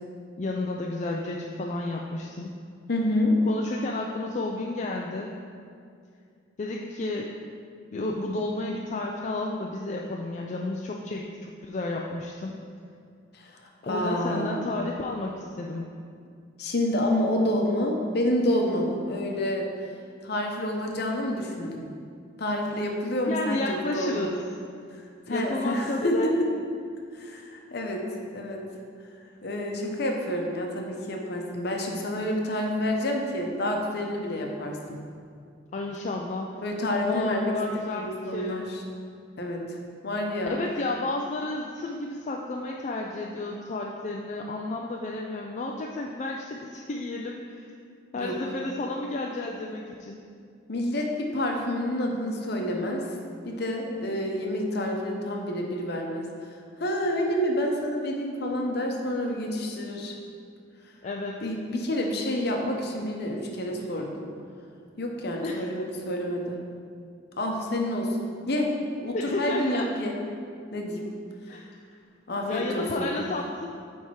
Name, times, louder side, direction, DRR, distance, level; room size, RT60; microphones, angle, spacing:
voice 1, 0.4-2.5 3.5-5.3 6.6-7.3 7.9-12.6 13.8-15.9 23.3-24.3 25.3-26.3 35.7-36.6 37.0-38.6 40.4-47.7 48.1-50.2 61.0-61.4 65.4-65.6 69.1-69.9 71.5-71.6 72.4-73.7, left 2 dB, 40° left, 0 dB, 0.4 m, -32 dB
voice 2, 2.9-3.4 13.3-13.5 13.8-14.7 16.6-19.7 20.2-21.9 22.4-24.3 25.3-26.5 27.1-28.0 28.3-28.6 29.4-35.0 36.6-37.6 37.9-38.8 39.4-39.8 40.0-40.6 48.1-48.4 50.7-53.1 53.4-56.3 56.8-60.2 61.4-64.3 65.0-66.6 67.4-68.2 68.5-70.2 70.7-71.0 72.3-73.1, left 1 dB, 55° left, 1 dB, 0.8 m, -28 dB
8.4 x 3.5 x 4.7 m, 2.3 s
head